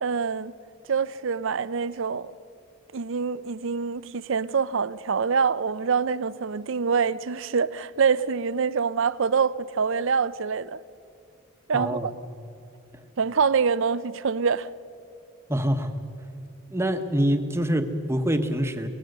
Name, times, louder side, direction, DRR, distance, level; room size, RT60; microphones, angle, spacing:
voice 1, 0.0-0.5 0.9-2.3 2.9-10.8 11.7-12.1 13.2-14.7, right 5 dB, 60° right, 0.5 m, -25 dB
voice 2, 11.7-12.1 15.5-15.9 16.7-18.9, equal, 10° right, 1.0 m, -25 dB
24.0 x 19.0 x 6.7 m
head